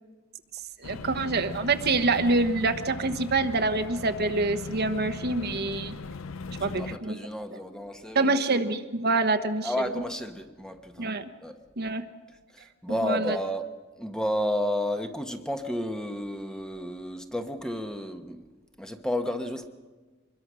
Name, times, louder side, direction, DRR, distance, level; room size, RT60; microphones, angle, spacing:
sound 1, 0.8-7.0, left 3 dB, 80° left, 0.7 m, -39 dB
voice 1, 0.8-5.9 6.6-7.2 8.1-9.7 11.0-11.2 11.8-12.0 13.0-13.4, right 3 dB, 50° right, 8 dB, 1.1 m, -26 dB
voice 2, 6.6-8.4 9.6-11.1 11.4-11.6 12.5-13.7 14.0-18.5 18.8-19.7, left 1 dB, 5° left, 6 dB, 1.2 m, -32 dB
25.5 x 21.5 x 6.2 m, 1.3 s
head